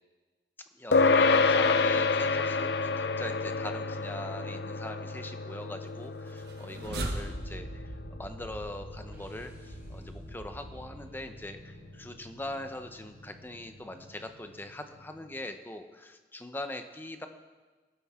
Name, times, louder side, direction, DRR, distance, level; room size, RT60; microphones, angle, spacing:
voice 1, 0.7-2.7 3.0-17.3, left 1 dB, 10° left, 7 dB, 0.8 m, -42 dB
sound 1, 0.9-10.6, left 4 dB, 65° left, 0.6 m, -29 dB
sound 2, 6.3-11.6, right 1 dB, 60° right, 1.5 m, -41 dB
sound 3, 9.1-15.5, equal, 15° right, 4.1 m, -56 dB
20.0 x 12.5 x 3.7 m, 1.3 s
head